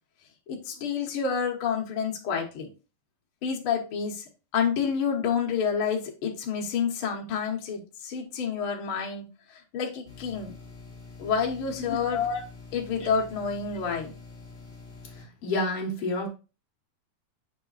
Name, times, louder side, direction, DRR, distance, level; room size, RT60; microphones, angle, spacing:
voice 1, 0.5-2.7 3.4-4.2 4.5-10.5 11.2-12.3 12.7-14.1, left 6 dB, 85° left, 0 dB, 1.1 m, -29 dB
sound 1, 10.0-15.2, left 4 dB, 25° left, 2.2 m, -46 dB
voice 2, 11.9-12.4 13.0-13.1 15.1-16.3, left 3 dB, 70° left, 1 dB, 1.4 m, -30 dB
7.4 x 3.4 x 4.0 m, 0.32 s
omnidirectional pair, 4.2 m